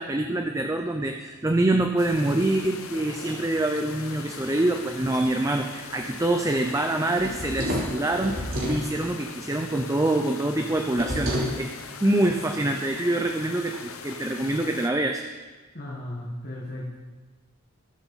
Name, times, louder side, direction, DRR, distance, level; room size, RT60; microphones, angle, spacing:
voice 1, 0.0-11.7 12.0-15.2, right 1 dB, 15° right, 4 dB, 0.5 m, -25 dB
sound 1, 2.0-14.9, left 5 dB, 75° left, 1.0 m, -41 dB
sound 2, 2.3-2.6 3.1-3.5 4.1-4.6 5.1-5.4 6.2-6.6 7.1-7.3 7.9-8.4, left 1 dB, 20° left, 1.4 m, -46 dB
sound 3, 7.2-8.8 10.9-11.6, equal, 70° right, 3.5 m, -28 dB
voice 2, 15.7-16.9, left 1 dB, 45° left, -3 dB, 1.6 m, -35 dB
20.0 x 7.8 x 4.1 m, 1.3 s
head